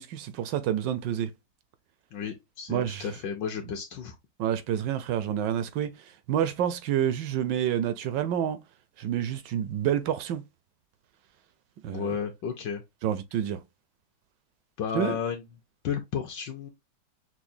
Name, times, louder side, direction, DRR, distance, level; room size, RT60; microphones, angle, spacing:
voice 1, 0.0-1.3 2.7-3.1 4.4-5.9 6.3-8.6 9.0-10.4 11.8-12.1 13.0-13.6 14.9-15.2, right 10 dB, 75° right, 1.2 m, -28 dB
voice 2, 2.1-4.1 11.9-12.8 14.8-15.4 15.8-16.7, left 7 dB, 70° left, 1.3 m, -33 dB
6.0 x 2.0 x 2.6 m
omnidirectional pair, 2.1 m